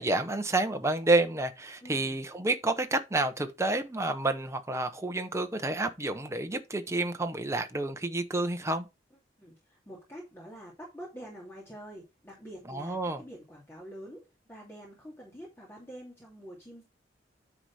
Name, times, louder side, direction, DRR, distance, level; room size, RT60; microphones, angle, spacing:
voice 1, 0.0-8.9 12.7-13.2, right 2 dB, 15° right, 0.8 m, -29 dB
voice 2, 1.8-2.2 9.4-16.8, equal, 15° left, 2.5 m, -47 dB
9.7 x 4.1 x 4.7 m
head